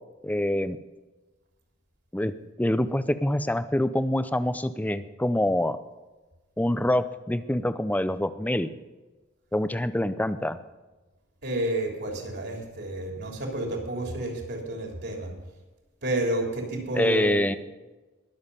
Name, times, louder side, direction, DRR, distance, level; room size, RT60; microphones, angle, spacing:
voice 1, 0.2-0.8 2.1-2.3 2.6-5.8 6.6-8.7 9.5-10.6 16.9-17.5, left 1 dB, 10° left, 13 dB, 0.5 m, -25 dB
voice 2, 11.4-15.3 16.0-17.4, right 1 dB, 55° right, 1 dB, 3.4 m, -30 dB
21.0 x 7.2 x 5.4 m, 1.2 s
head